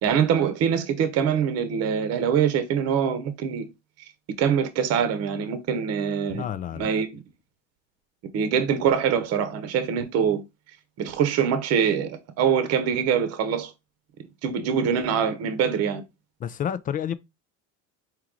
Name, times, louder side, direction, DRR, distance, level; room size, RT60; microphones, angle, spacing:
voice 1, 0.0-3.7 4.4-6.4 6.8-7.2 8.3-10.4 11.0-13.7 14.4-16.0, right 7 dB, 50° right, 0.9 m, -24 dB
voice 2, 6.3-6.9 16.4-17.1, left 9 dB, 25° left, 0.3 m, -29 dB
4.7 x 3.0 x 3.7 m
cardioid pair, 135°, 32 cm